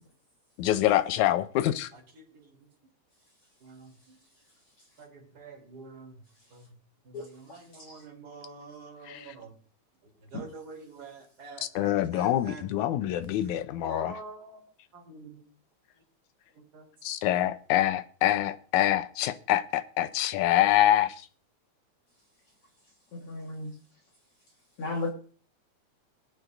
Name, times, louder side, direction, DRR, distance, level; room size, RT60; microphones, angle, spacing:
voice 1, 0.6-1.9 9.1-9.3 11.8-14.1 17.0-21.2, left 13 dB, 90° left, 2.1 m, -25 dB
voice 2, 1.9-2.7 3.6-4.2 5.0-6.2 6.5-6.7 7.0-9.5 10.2-12.6 13.8-14.6 14.9-15.4 16.5-16.8, right 4 dB, 35° right, 3.5 m, -47 dB
voice 3, 23.1-23.7 24.8-25.1, left 2 dB, 55° left, 2.3 m, -33 dB
21.0 x 9.2 x 2.6 m
omnidirectional pair, 3.3 m